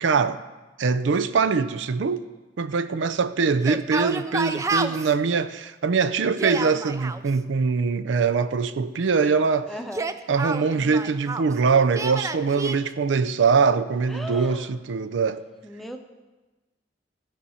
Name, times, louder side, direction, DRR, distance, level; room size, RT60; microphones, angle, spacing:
voice 1, 0.0-0.4 0.8-2.2 2.6-9.7 10.3-15.4, right 5 dB, 80° right, 0.4 m, -23 dB
Yell, 3.5-5.1 6.2-7.2 9.8-11.5 11.9-12.8, right 3 dB, 15° right, 0.3 m, -29 dB
voice 2, 9.7-10.0 14.1-14.7 15.6-16.0, equal, ahead, 0.8 m, -36 dB
15.5 x 5.4 x 5.6 m
head